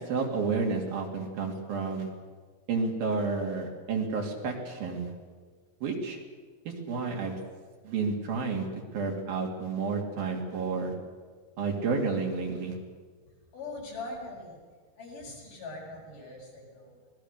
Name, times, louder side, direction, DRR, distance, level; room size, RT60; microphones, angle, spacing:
voice 1, 0.0-2.1 2.7-5.1 5.8-6.2 6.9-7.4 7.8-10.9 11.6-12.8, right 4 dB, 75° right, 1 dB, 4.6 m, -30 dB
voice 2, 13.5-14.6 15.0-17.0, left 2 dB, 60° left, -3 dB, 8.2 m, -41 dB
26.0 x 20.0 x 6.8 m, 1.5 s
omnidirectional pair, 4.2 m